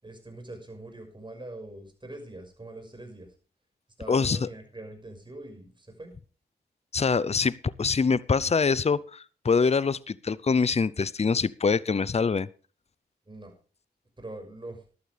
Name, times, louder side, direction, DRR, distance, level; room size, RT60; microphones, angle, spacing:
voice 1, 0.0-3.3 4.0-6.1 13.3-13.5 14.2-14.8, right 2 dB, 25° right, 6.0 m, -43 dB
voice 2, 4.1-4.5 6.9-12.5, left 5 dB, 35° left, 0.7 m, -24 dB
14.5 x 12.0 x 3.5 m
cardioid pair, 45°, 18 cm